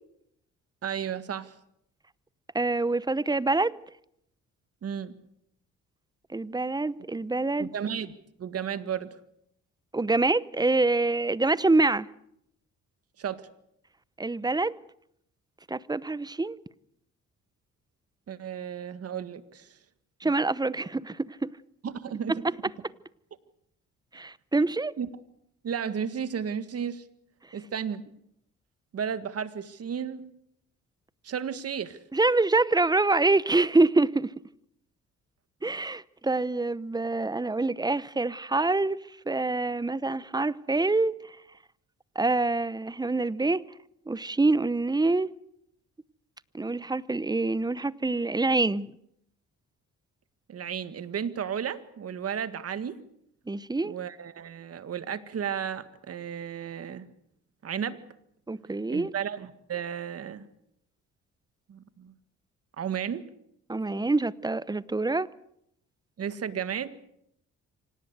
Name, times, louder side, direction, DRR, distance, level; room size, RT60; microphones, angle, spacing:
voice 1, 0.8-1.5 4.8-5.1 7.6-9.1 13.2-13.5 18.3-19.7 20.2-20.3 21.8-22.4 25.0-25.1 25.6-27.0 27.5-28.0 28.9-30.3 31.2-32.0 50.5-53.0 53.8-57.1 57.6-58.0 58.9-60.5 61.7-62.1 62.8-63.2 66.2-67.0, right 8 dB, 55° right, 1.8 m, -33 dB
voice 2, 2.5-3.8 6.3-7.7 9.9-12.1 14.2-14.8 15.7-16.6 20.2-21.5 24.1-24.9 32.1-34.3 35.6-39.0 39.3-41.4 42.1-43.6 44.1-45.3 46.5-48.9 53.5-53.9 58.5-59.1 63.7-65.3, right 3 dB, 15° right, 0.8 m, -26 dB
25.5 x 18.5 x 8.1 m
cardioid pair, 90°, 30 cm